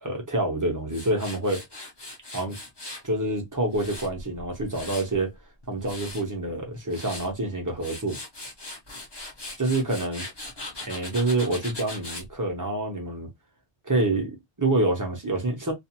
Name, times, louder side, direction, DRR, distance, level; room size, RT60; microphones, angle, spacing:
voice 1, 0.0-1.6 2.3-2.6 3.0-5.3 5.7-8.2 9.6-10.2 10.8-13.3 13.9-15.7, right 2 dB, 20° right, 0.7 m, -27 dB
Tools, 0.9-3.1 3.5-5.2 5.6-6.2 6.7-7.3 7.7-12.3, left 2 dB, 25° left, 0.7 m, -39 dB
2.4 x 2.4 x 2.8 m
omnidirectional pair, 1.1 m